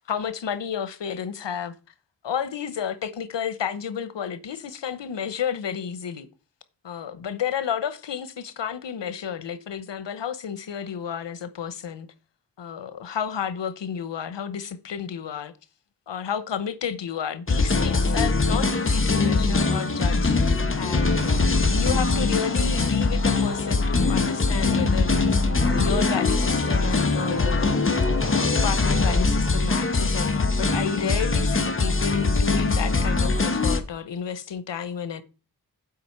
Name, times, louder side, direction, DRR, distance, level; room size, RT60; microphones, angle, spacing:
voice 1, 0.1-1.7 2.2-6.3 6.8-12.1 12.6-15.5 16.1-25.1 25.6-35.2, left 7 dB, 85° left, 1.0 m, -31 dB
sound 1, 17.5-33.8, left 3 dB, 30° left, 1.2 m, -22 dB
7.7 x 5.1 x 6.5 m
wide cardioid pair, 80°, 42 cm